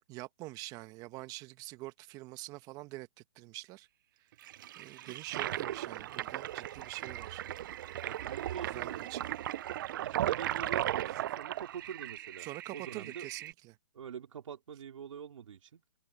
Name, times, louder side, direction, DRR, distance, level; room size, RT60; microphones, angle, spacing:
voice 1, 0.1-3.9 4.7-7.4 8.7-9.3 11.1-11.2 12.4-13.8, right 19 dB, 20° right, 1.2 m, -45 dB
Toilet flush, 4.4-13.5, right 13 dB, 35° right, 0.5 m, -37 dB
voice 2, 8.0-9.2 10.0-12.5 12.7-13.3 13.9-15.8, right 8 dB, 65° right, 3.1 m, -45 dB
open air
hypercardioid pair, 155°, 18 cm